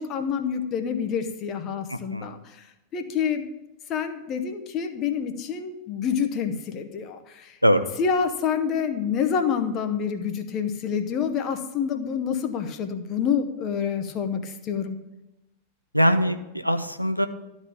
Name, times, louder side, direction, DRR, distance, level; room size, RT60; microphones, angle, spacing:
voice 1, 0.0-2.6 2.9-3.5 3.9-7.6 8.0-15.0, left 7 dB, 35° left, 7 dB, 0.9 m, -27 dB
voice 2, 1.9-2.3 7.6-7.9 15.9-17.3, equal, 90° left, 9 dB, 0.5 m, -22 dB
12.0 x 4.1 x 6.8 m, 0.95 s
figure-of-eight pair, 90°, 0 cm